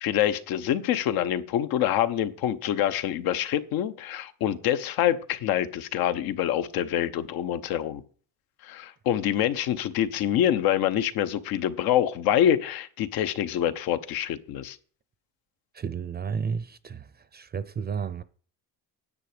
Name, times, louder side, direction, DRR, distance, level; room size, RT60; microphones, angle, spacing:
voice 1, 0.0-8.0 8.6-14.8, left 11 dB, 90° left, 1.0 m, -26 dB
voice 2, 15.7-17.1 17.3-18.2, right 6 dB, 30° right, 0.5 m, -32 dB
9.9 x 8.2 x 5.0 m
cardioid pair, 130°, 35 cm